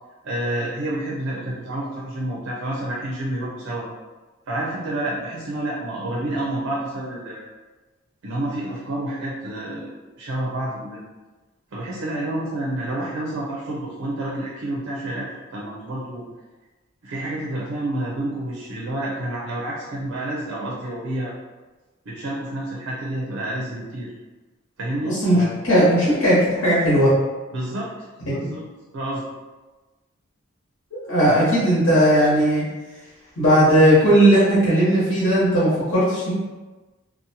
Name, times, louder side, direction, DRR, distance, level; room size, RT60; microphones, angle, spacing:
voice 1, 0.2-3.9 4.5-7.4 8.2-11.0 11.7-15.3 15.5-16.3 17.0-21.3 22.1-24.1 24.8-25.5 27.5-27.9 28.3-28.7 28.9-29.2 31.3-31.5, right 1 dB, 80° right, -5 dB, 0.5 m, -29 dB
voice 2, 25.0-25.4 25.6-27.1 28.3-28.5 30.9-32.6 33.4-36.3, right 1 dB, 75° left, -11 dB, 1.0 m, -17 dB
2.7 x 2.1 x 2.8 m, 1.2 s
head